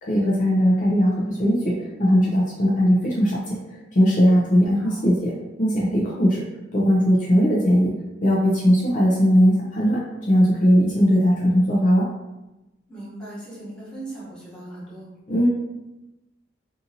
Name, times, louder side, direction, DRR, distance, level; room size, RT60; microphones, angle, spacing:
voice 1, 0.0-5.3 5.6-6.4 6.7-7.9 8.2-10.0 10.3-12.1 15.3-15.5, equal, 45° left, -5 dB, 0.5 m, -19 dB
voice 2, 4.7-5.1 12.9-15.1, right 1 dB, 5° left, -10 dB, 1.0 m, -38 dB
2.7 x 2.5 x 2.7 m, 1.0 s
head